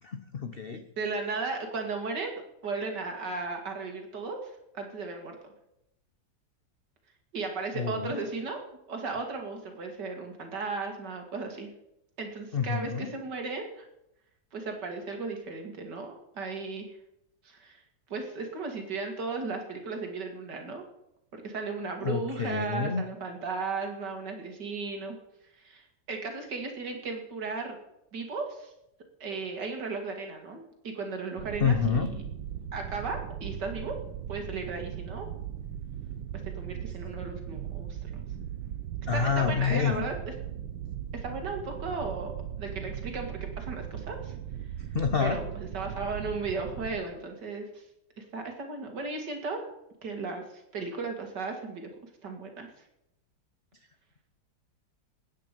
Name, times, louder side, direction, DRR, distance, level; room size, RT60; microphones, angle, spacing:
voice 1, 0.0-0.9 7.7-8.2 12.5-13.1 22.0-23.0 31.6-32.1 39.1-40.0 44.9-45.4, left 6 dB, 50° left, 7 dB, 0.7 m, -28 dB
voice 2, 1.0-5.4 7.3-8.6 8.9-11.7 12.2-13.9 14.5-17.0 17.4-17.8 18.1-20.8 21.3-25.2 25.5-27.8 28.1-28.7 29.2-32.2 32.7-34.0 34.3-35.3 36.6-38.3 39.1-40.3 41.1-42.3 42.6-44.4 45.2-47.8 48.2-49.7 50.0-51.9 52.2-52.7, right 4 dB, 65° right, 4 dB, 2.7 m, -35 dB
sound 1, 31.4-47.0, right 10 dB, 85° right, 1.6 m, -38 dB
20.5 x 9.3 x 5.3 m, 0.85 s
omnidirectional pair, 2.0 m